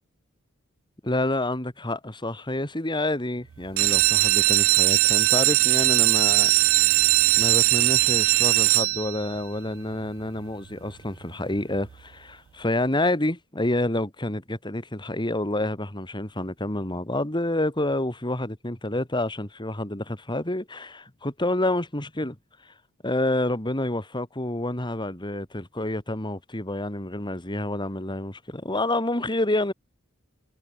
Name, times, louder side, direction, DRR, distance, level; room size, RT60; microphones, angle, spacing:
voice 1, 1.0-6.9 7.4-22.4 23.0-29.7, left 1 dB, 20° left, 2.7 m, -28 dB
sound 1, 3.6-9.4 10.0-10.5 10.9-11.0 11.2-11.3 11.7-11.9, right 20 dB, 70° right, 0.4 m, -20 dB
head